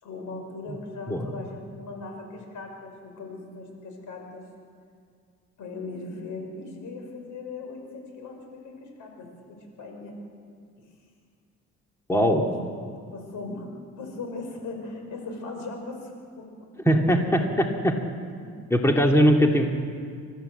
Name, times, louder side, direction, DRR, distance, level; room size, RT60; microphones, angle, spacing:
voice 1, 0.0-4.5 5.6-10.1 10.8-10.9 12.4-13.7 14.0-16.7 18.4-18.5, left 3 dB, 80° left, 2 dB, 5.5 m, -39 dB
voice 2, 12.1-12.4 16.9-18.0 18.7-19.7, equal, 10° left, 2 dB, 2.3 m, -20 dB
29.5 x 14.0 x 7.9 m, 2.2 s
cardioid pair, 90°, 30 cm